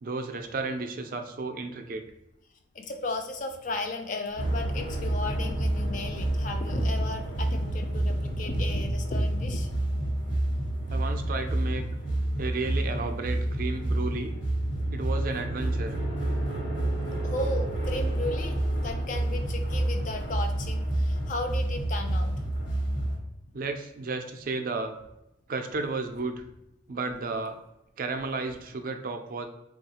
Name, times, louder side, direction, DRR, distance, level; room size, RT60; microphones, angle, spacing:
voice 1, 0.0-2.0 10.9-11.8 12.4-14.3 14.9-15.9 23.5-25.0 25.5-26.4 26.9-27.6 28.0-29.5, right 3 dB, 45° right, 6 dB, 0.3 m, -33 dB
voice 2, 2.7-9.7 10.0-10.1 10.5-10.6 12.7-12.8 17.2-18.6 18.8-22.3, left 2 dB, 40° left, 5 dB, 0.4 m, -34 dB
sound 1, 4.4-23.2, right 1 dB, 80° left, 1.1 m, -29 dB
3.6 x 2.3 x 2.8 m, 0.86 s
head